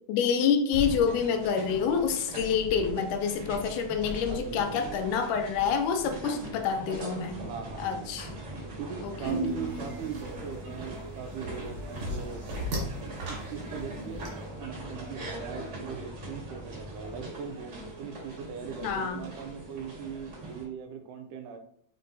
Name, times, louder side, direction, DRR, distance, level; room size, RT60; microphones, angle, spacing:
voice 1, 0.1-7.4 7.8-8.3 9.0-9.4 18.8-19.2, left 6 dB, 80° left, 7 dB, 2.0 m, -27 dB
sound 1, 0.7-20.6, right 1 dB, 40° right, 1.7 m, -41 dB
voice 2, 4.3-5.0 6.2-6.6 7.4-8.2 8.8-12.4 13.3-14.3 14.6-17.7 18.0-21.6, right 7 dB, 80° right, 5 dB, 2.1 m, -40 dB
sound 2, 7.2-17.2, equal, 60° left, 0.8 m, -46 dB
sound 3, 9.2-14.3, right 1 dB, 65° right, 2.7 m, -35 dB
5.4 x 3.7 x 2.6 m, 0.65 s
omnidirectional pair, 3.6 m